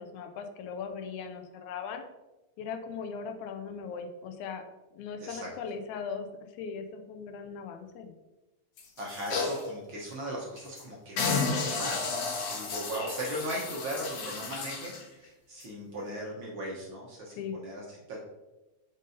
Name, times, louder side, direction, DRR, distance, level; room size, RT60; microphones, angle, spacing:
voice 1, 0.0-2.0 2.6-4.6 4.9-6.3 6.5-8.1 17.3-17.6, left 6 dB, 90° left, 6 dB, 2.0 m, -39 dB
sound 1, 8.8-9.7 10.1-10.2 10.6-10.8 11.2-15.0 15.6-15.7, left 4 dB, 65° left, 1.9 m, -32 dB
voice 2, 9.0-18.2, right 1 dB, 60° right, -4 dB, 1.5 m, -38 dB
7.4 x 5.3 x 2.7 m, 1.1 s
omnidirectional pair, 3.4 m